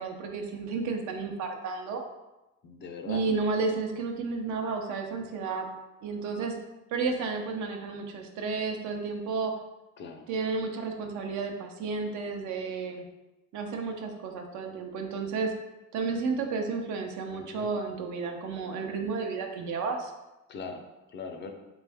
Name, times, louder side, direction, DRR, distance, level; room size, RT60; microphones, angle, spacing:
voice 1, 0.0-2.0 3.0-5.7 6.0-6.6 6.9-9.5 10.3-13.0 13.5-15.5 15.9-20.1, right 4 dB, 65° right, 4 dB, 0.7 m, -32 dB
voice 2, 2.6-3.2 10.0-10.3 17.3-17.7 20.5-21.5, left 5 dB, 35° left, 4 dB, 0.4 m, -40 dB
3.4 x 3.1 x 3.5 m, 1.0 s
cardioid pair, 125°, 31 cm